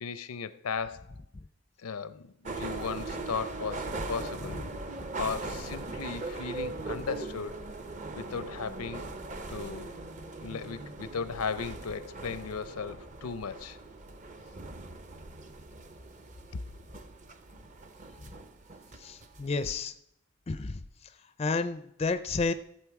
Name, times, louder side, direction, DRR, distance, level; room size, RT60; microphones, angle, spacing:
voice 1, 0.0-1.1 1.8-4.6 5.2-7.6 8.2-9.1 9.5-10.0 10.4-13.8, left 5 dB, 85° left, 14 dB, 0.6 m, -36 dB
sound 1, 2.4-19.7, right 3 dB, 35° right, 0.7 m, -40 dB
voice 2, 19.0-19.9 20.5-20.8 21.4-22.5, left 3 dB, 25° left, 11 dB, 0.4 m, -31 dB
14.5 x 7.6 x 4.7 m, 0.76 s
head